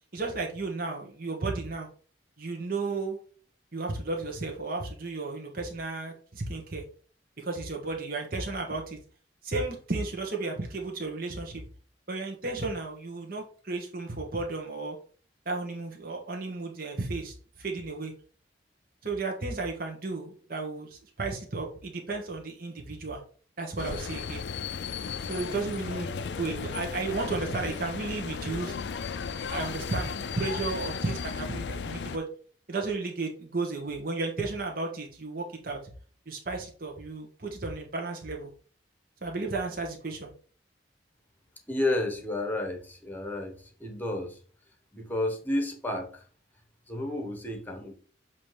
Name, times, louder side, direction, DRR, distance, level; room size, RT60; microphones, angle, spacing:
voice 1, 0.1-1.9 2.4-3.2 3.7-6.8 7.4-9.0 9.4-11.6 12.1-15.0 15.4-18.1 19.0-23.2 23.6-24.4 25.3-26.1 26.4-28.7 29.5-32.2 32.7-35.8 36.3-38.5 39.2-40.3, right 3 dB, 50° right, 1 dB, 1.2 m, -33 dB
sound 1, 23.8-32.2, left 5 dB, 70° left, 0.4 m, -35 dB
voice 2, 41.7-44.4 44.9-46.3 46.9-47.9, left 1 dB, 10° left, 4 dB, 1.1 m, -31 dB
7.3 x 2.9 x 4.8 m, 0.42 s
head